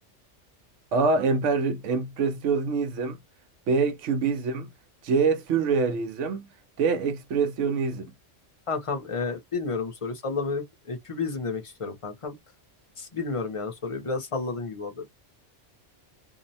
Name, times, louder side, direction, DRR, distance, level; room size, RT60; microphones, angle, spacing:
voice 1, 0.9-3.2 3.7-4.7 5.0-6.5 6.8-8.1, right 4 dB, 80° right, 0.9 m, -25 dB
voice 2, 8.7-12.4 13.0-15.1, left 4 dB, 35° left, 0.5 m, -31 dB
2.6 x 2.0 x 2.6 m
omnidirectional pair, 1.2 m